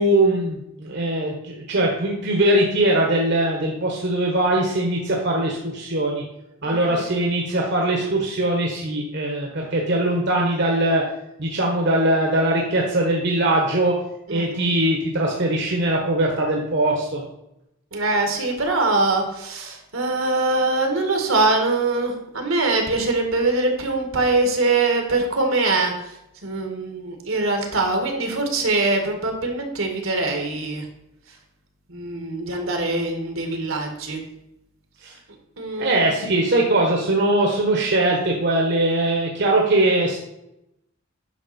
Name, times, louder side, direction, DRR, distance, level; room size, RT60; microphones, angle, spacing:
voice 1, 0.0-6.2 6.6-11.0 11.4-14.0 14.3-17.2 35.0-35.1 35.8-40.2, right 1 dB, 60° right, 0 dB, 1.4 m, -21 dB
voice 2, 6.6-7.0 14.3-14.7 17.9-26.1 26.4-30.9 31.9-34.2 35.6-36.1, right 2 dB, 80° right, 3 dB, 2.0 m, -23 dB
9.9 x 6.1 x 4.4 m, 0.84 s
head